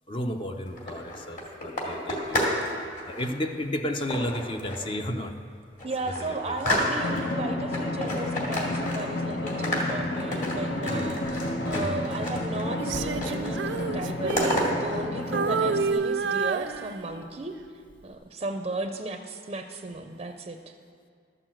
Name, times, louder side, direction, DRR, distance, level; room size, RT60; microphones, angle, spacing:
voice 1, 0.1-5.4 6.0-6.6 10.8-11.2 11.7-12.0, left 1 dB, 30° left, 5 dB, 0.6 m, -33 dB
sound 1, 0.7-2.6 2.9-3.3 4.1-4.9 5.4-5.5 5.8-7.3 7.7-9.2 9.5-12.6 12.9-13.5 13.8-14.7, left 1 dB, 50° left, 2.4 m, -31 dB
voice 2, 5.8-11.4 11.6-13.6 13.9-17.6 18.0-20.7, right 2 dB, 35° right, 5 dB, 0.5 m, -35 dB
Drum, 7.0-15.9, left 1 dB, 70° left, 1.0 m, -31 dB
Female singing, 12.8-15.1 15.3-17.4 17.9-18.1, right 5 dB, 85° right, 0.5 m, -29 dB
12.5 x 6.5 x 7.6 m, 2.1 s
head